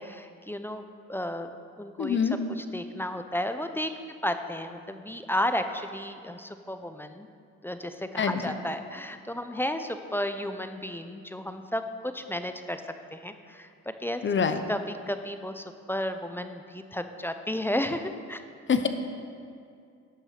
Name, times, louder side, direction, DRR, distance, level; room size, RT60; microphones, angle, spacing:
voice 1, 0.0-1.5 1.8-2.2 2.5-7.3 7.6-12.8 13.1-13.7 14.0-14.2 14.7-18.4, left 1 dB, 5° left, 8 dB, 0.6 m, -33 dB
voice 2, 2.0-2.4 8.2-8.4 14.2-14.6 18.7-18.9, left 6 dB, 40° left, 8 dB, 0.7 m, -24 dB
11.5 x 6.3 x 5.8 m, 2.3 s
cardioid pair, 90°, 30 cm